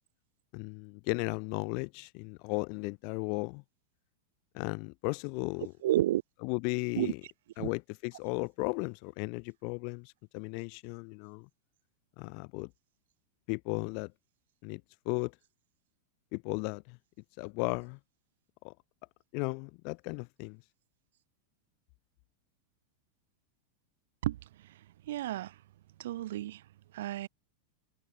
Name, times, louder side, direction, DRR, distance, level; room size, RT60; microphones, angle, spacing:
voice 1, 0.5-3.6 4.5-5.7 6.4-7.2 7.6-11.5 12.2-12.7 13.5-14.1 14.6-15.3 16.3-17.0 17.4-18.0 18.6-18.7 19.3-20.6, left 40 dB or more, 45° left, 1.1 m, -35 dB
voice 2, 5.8-6.2 6.9-7.1 7.6-7.7 24.2-24.4 25.1-25.5 26.0-26.6 26.9-27.3, right 14 dB, 55° right, 1.3 m, -31 dB
figure-of-eight pair, 90°, 0 cm